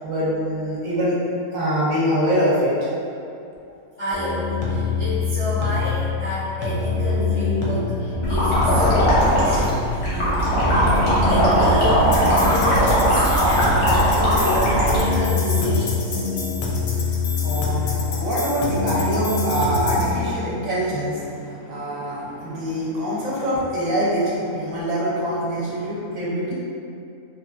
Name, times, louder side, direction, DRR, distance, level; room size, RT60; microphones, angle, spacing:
voice 1, 0.0-1.2 1.5-2.9 16.9-26.5, equal, 70° right, -7 dB, 1.1 m, -24 dB
voice 2, 4.0-16.3, left 1 dB, 30° left, -14 dB, 0.5 m, -29 dB
sound 1, 4.1-20.1, left 4 dB, 65° left, 0.8 m, -24 dB
sound 2, 8.2-15.0, equal, 90° left, 1.4 m, -19 dB
3.3 x 2.3 x 2.3 m, 2.6 s
omnidirectional pair, 1.5 m